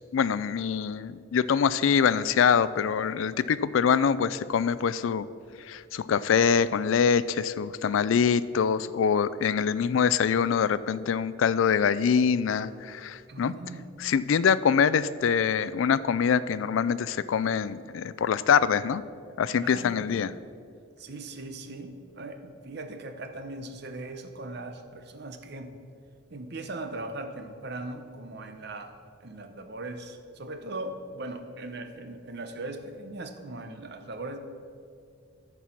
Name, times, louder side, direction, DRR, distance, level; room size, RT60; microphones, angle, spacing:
voice 1, 0.1-5.3 5.7-13.5 14.0-19.0 19.4-20.3, left 7 dB, 80° left, 16 dB, 0.4 m, -24 dB
voice 2, 13.3-13.9 19.6-20.1 21.0-25.7 26.3-29.0 29.2-34.4, right 2 dB, 55° right, 7 dB, 0.8 m, -39 dB
14.0 x 4.7 x 5.8 m, 2.3 s
head